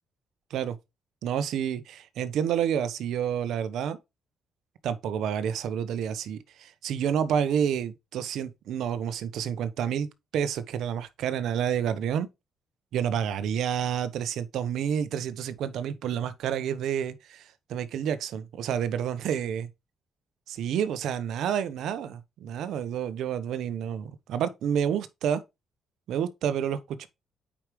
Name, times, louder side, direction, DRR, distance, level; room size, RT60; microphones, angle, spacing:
voice 1, 1.2-4.0 4.8-12.3 12.9-19.7 20.5-25.4 26.1-27.1, right 8 dB, 80° right, 0.9 m, -29 dB
8.7 x 4.9 x 3.1 m
cardioid pair, 90°, 0 cm